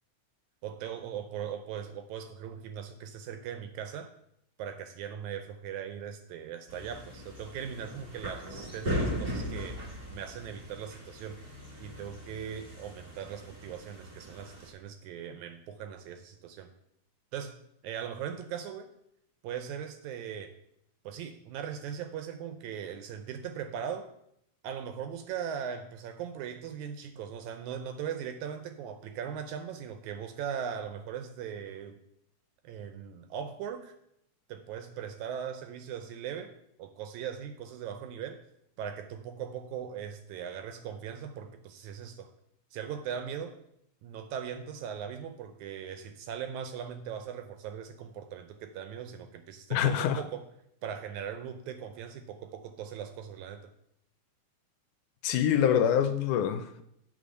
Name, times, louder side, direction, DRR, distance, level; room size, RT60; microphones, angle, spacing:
voice 1, 0.6-4.1 4.6-9.8 10.1-11.4 11.8-16.7 17.3-18.9 19.4-20.5 21.1-24.1 24.6-32.0 32.6-34.0 34.5-38.4 38.8-42.3 42.7-43.6 44.0-50.4 50.8-53.7, right 8 dB, 80° right, 1.8 m, -39 dB
sound 1, 6.7-14.7, equal, 25° right, 1.4 m, -38 dB
voice 2, 49.7-50.2 55.2-56.8, left 9 dB, 80° left, 2.0 m, -25 dB
8.4 x 4.1 x 6.3 m
omnidirectional pair, 3.7 m